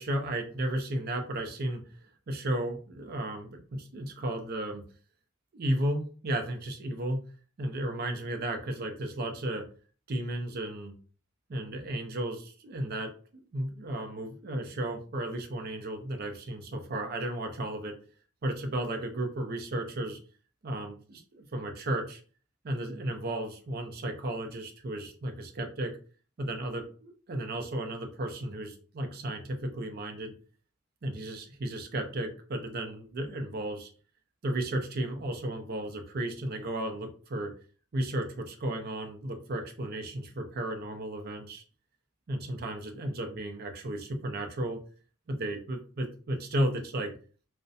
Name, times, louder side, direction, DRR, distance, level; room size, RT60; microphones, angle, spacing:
voice 1, 0.0-1.8 2.3-4.8 5.5-7.2 7.6-9.7 10.1-10.9 11.5-18.0 18.4-20.2 20.6-22.2 22.6-25.9 26.4-30.3 31.0-33.9 34.4-37.5 37.9-41.6 42.3-44.8 45.3-47.1, right 1 dB, 50° right, 4 dB, 0.5 m, -34 dB
2.4 x 2.1 x 2.6 m, 0.40 s
head